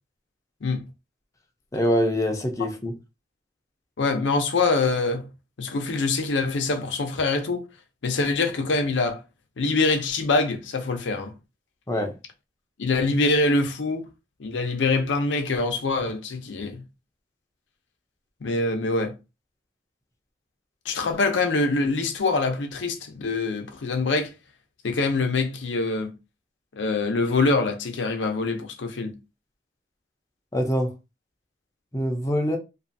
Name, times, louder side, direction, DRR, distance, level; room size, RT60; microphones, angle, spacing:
voice 1, 1.7-2.9 11.9-12.1 30.5-30.9 31.9-32.6, equal, 20° left, 0.6 m, -24 dB
voice 2, 4.0-5.3 5.6-7.6 8.0-9.2 9.6-11.3 12.8-14.1 14.4-16.8 18.4-19.2 20.9-24.3 24.8-26.1 26.7-29.1, left 3 dB, 80° left, 0.6 m, -24 dB
2.6 x 2.3 x 2.6 m
head